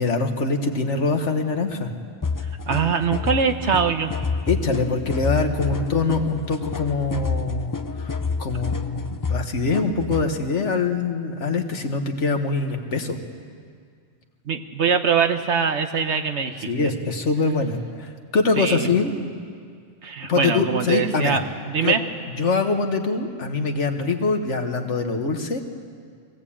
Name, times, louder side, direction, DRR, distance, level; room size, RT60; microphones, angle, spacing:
voice 1, 0.0-1.9 4.5-13.2 16.7-19.1 20.3-21.4 21.8-22.0 22.4-25.6, left 4 dB, 75° left, 5 dB, 1.8 m, -24 dB
sound 1, 2.2-10.3, left 4 dB, 20° left, 0.6 m, -28 dB
voice 2, 2.7-4.1 14.4-16.7 18.6-18.9 20.0-22.0, right 6 dB, 70° right, 7 dB, 1.5 m, -23 dB
23.0 x 17.5 x 8.7 m, 2.2 s
omnidirectional pair, 1.2 m